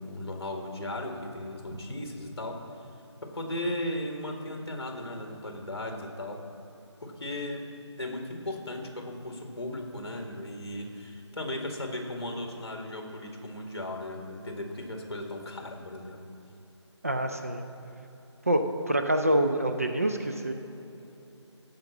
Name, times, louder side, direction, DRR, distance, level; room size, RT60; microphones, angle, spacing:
voice 1, 0.0-2.6 3.2-6.4 7.0-7.6 8.0-16.2, left 1 dB, 55° left, 2 dB, 1.8 m, -36 dB
voice 2, 17.0-17.6 18.5-20.5, right 1 dB, 30° right, 5 dB, 0.5 m, -26 dB
15.0 x 5.1 x 7.3 m, 3.0 s
figure-of-eight pair, 175°, 15 cm